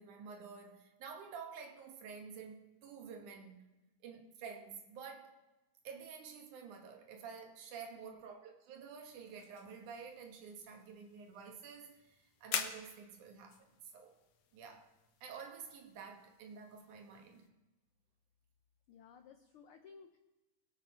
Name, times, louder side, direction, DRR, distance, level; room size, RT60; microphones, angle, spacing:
voice 1, 0.0-3.7 4.0-5.3 5.8-13.7 13.9-14.1 14.5-14.9 15.2-17.5, right 6 dB, 80° right, 3 dB, 2.8 m, -50 dB
sound 1, 9.0-17.5, left 7 dB, 65° left, 1.8 m, -48 dB
voice 2, 18.9-20.2, left 6 dB, 90° left, 6 dB, 1.2 m, -57 dB
22.0 x 8.2 x 4.4 m, 1.1 s
omnidirectional pair, 3.5 m